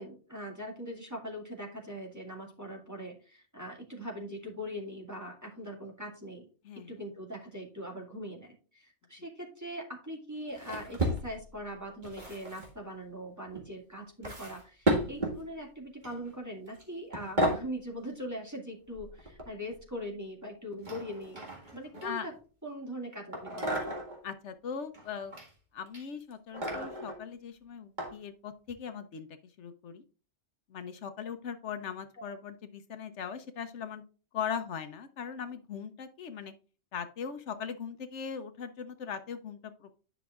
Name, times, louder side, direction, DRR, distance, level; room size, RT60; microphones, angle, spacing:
voice 1, 0.0-6.5 6.9-21.4 21.7-22.3 22.6-23.8, equal, 15° right, 0 dB, 2.0 m, -41 dB
sound 1, 10.5-11.6 12.0-12.7 13.5-13.6 14.2-15.4 16.0-16.3 16.7-16.8 17.1-17.7 18.9-19.8 20.8-22.4 23.3-24.2 24.9-25.5 25.9-27.2 28.0-28.1 28.7-28.8, right 1 dB, 40° right, 2.0 m, -33 dB
voice 2, 24.2-25.3 25.7-30.0 30.7-34.0 34.3-36.5 36.9-39.9, left 7 dB, 70° left, 9 dB, 1.0 m, -39 dB
10.5 x 5.9 x 2.4 m, 0.37 s
omnidirectional pair, 1.3 m